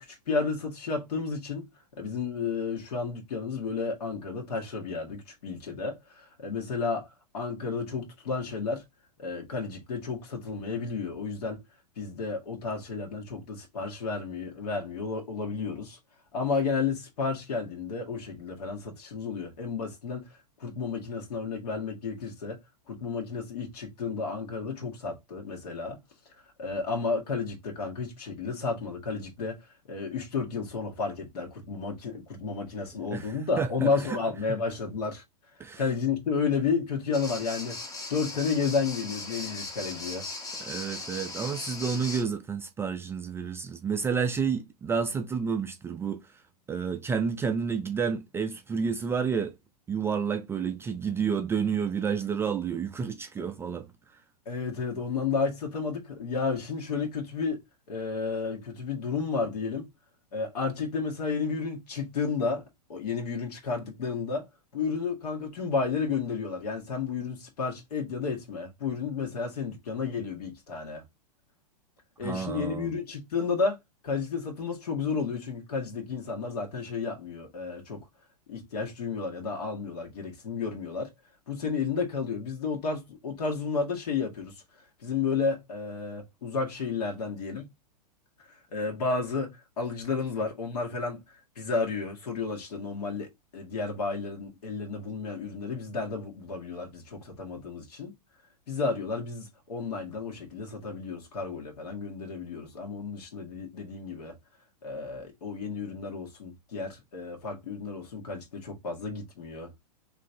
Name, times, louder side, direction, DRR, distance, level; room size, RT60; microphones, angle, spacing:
voice 1, 0.0-1.6 2.0-7.1 7.3-8.8 9.2-11.6 12.0-16.0 16.3-20.3 20.6-22.6 22.9-26.0 26.6-29.6 29.9-35.2 35.8-37.8 38.1-40.3 54.4-57.6 57.9-59.9 60.3-62.6 62.9-64.5 64.7-71.0 72.2-73.8 74.0-78.0 78.5-81.1 81.5-84.6 85.0-87.6 88.7-91.2 91.5-98.1 98.7-104.4 104.8-109.7, left 4 dB, 70° left, 1.7 m, -32 dB
voice 2, 33.1-34.2 35.6-35.8 40.6-46.2 46.7-49.6 49.9-53.9 72.2-72.9, right 6 dB, 10° right, 0.3 m, -30 dB
sound 1, 37.1-42.2, left 3 dB, 15° left, 0.8 m, -38 dB
3.7 x 3.2 x 2.7 m
hypercardioid pair, 110°, 21 cm